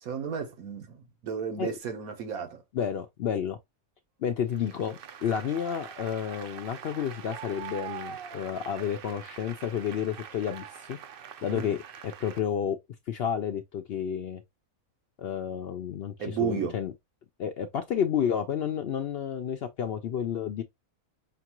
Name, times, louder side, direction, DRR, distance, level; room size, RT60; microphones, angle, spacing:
voice 1, 0.0-2.6 11.5-11.7 16.2-16.8, right 7 dB, 85° right, 1.4 m, -33 dB
voice 2, 2.7-3.6 4.2-11.0 11.4-11.8 12.0-12.8 13.1-14.4 15.2-16.9 17.4-20.6, left 8 dB, 65° left, 0.6 m, -31 dB
Applause, 4.5-12.4, right 8 dB, 60° right, 0.6 m, -44 dB
5.8 x 2.4 x 2.9 m
omnidirectional pair, 1.5 m